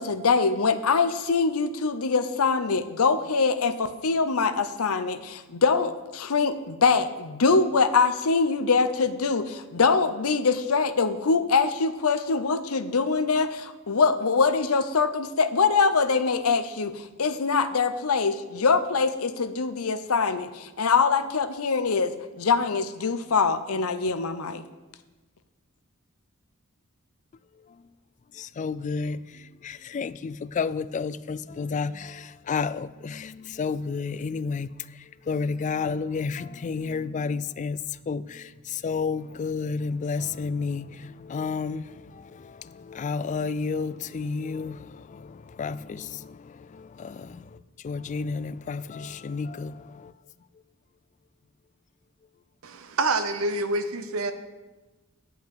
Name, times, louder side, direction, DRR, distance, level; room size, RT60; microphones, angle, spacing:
voice 1, 0.0-24.6, left 4 dB, 90° left, 0.7 m, -23 dB
voice 2, 28.4-34.7 35.3-37.8 38.1-47.6 47.8-50.1, left 5 dB, 35° left, 0.3 m, -31 dB
voice 3, 52.6-54.3, right 2 dB, 75° right, 0.9 m, -27 dB
10.0 x 5.8 x 7.7 m
head